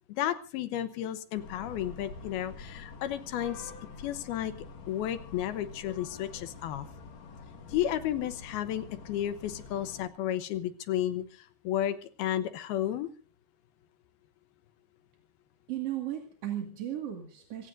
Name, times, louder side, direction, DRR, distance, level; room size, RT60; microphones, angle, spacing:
voice 1, 0.1-3.7 4.0-4.5 4.9-6.9 7.7-13.1, left 11 dB, 80° left, 11 dB, 2.9 m, -32 dB
sound 1, 1.4-10.1, left 4 dB, 55° left, 2.6 m, -47 dB
voice 2, 15.7-17.7, right 12 dB, 45° right, 2 dB, 2.7 m, -35 dB
26.5 x 17.0 x 2.6 m, 0.35 s
omnidirectional pair, 4.5 m